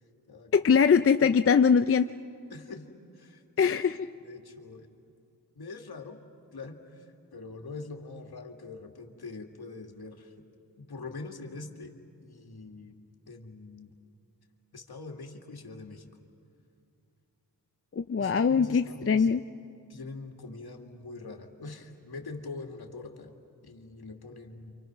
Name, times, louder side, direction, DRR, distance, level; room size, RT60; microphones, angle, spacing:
voice 1, 0.5-2.1 3.6-4.1 17.9-19.4, left 6 dB, 35° left, 9 dB, 0.6 m, -22 dB
voice 2, 2.5-2.9 3.1-3.8 4.2-4.9 5.5-6.2 6.5-10.3 10.8-11.9 12.2-13.0 13.3-13.9 14.7-16.1 18.2-19.3 19.9-23.3 23.6-24.8, left 3 dB, 65° left, 3 dB, 2.4 m, -43 dB
28.5 x 26.0 x 6.1 m, 2.5 s
cardioid pair, 50°, 41 cm